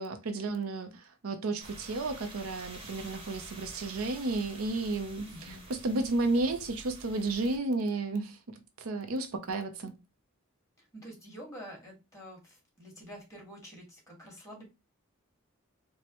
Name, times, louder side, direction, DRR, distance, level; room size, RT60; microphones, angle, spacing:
voice 1, 0.0-10.0, right 2 dB, 75° right, 0.6 m, -32 dB
sound 1, 1.6-7.6, right 2 dB, 25° right, 1.0 m, -48 dB
voice 2, 5.3-5.6 10.8-14.6, equal, 15° left, 1.7 m, -48 dB
4.6 x 2.1 x 3.0 m
head